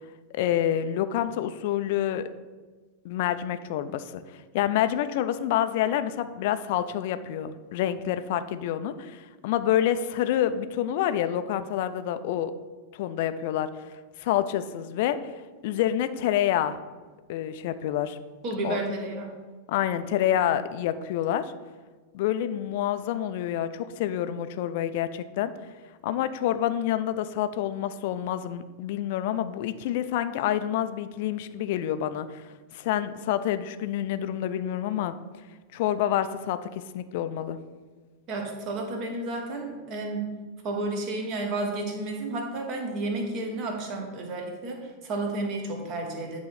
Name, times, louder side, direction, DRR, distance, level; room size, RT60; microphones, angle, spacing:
voice 1, 0.3-2.3 3.0-12.5 12.9-16.8 17.3-18.2 18.6-18.8 19.7-21.5 22.1-25.5 26.0-35.2 35.7-37.6, left 11 dB, 50° left, 11 dB, 0.4 m, -28 dB
voice 2, 18.4-19.4 38.3-40.3 40.6-46.4, right 2 dB, 40° right, 3 dB, 1.3 m, -31 dB
9.1 x 3.1 x 5.7 m, 1.4 s
figure-of-eight pair, 90°, 0 cm